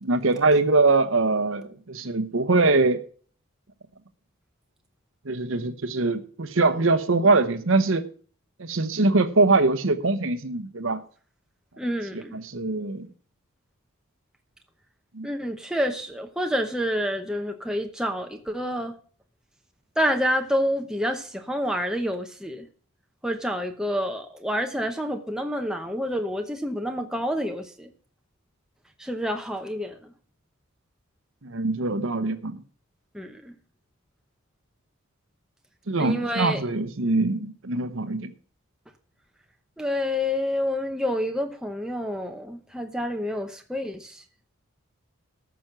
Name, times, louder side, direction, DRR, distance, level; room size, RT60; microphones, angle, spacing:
voice 1, 0.0-3.0 5.2-8.0 8.6-11.0 12.1-13.1 15.1-15.3 31.4-32.6 35.9-38.3, right 3 dB, 60° right, 1.0 m, -23 dB
voice 2, 11.8-12.3 15.2-18.9 20.0-22.7 23.2-27.9 29.0-30.1 33.1-33.5 36.0-36.6 39.8-44.2, equal, 5° right, 0.8 m, -28 dB
14.0 x 6.1 x 5.9 m
head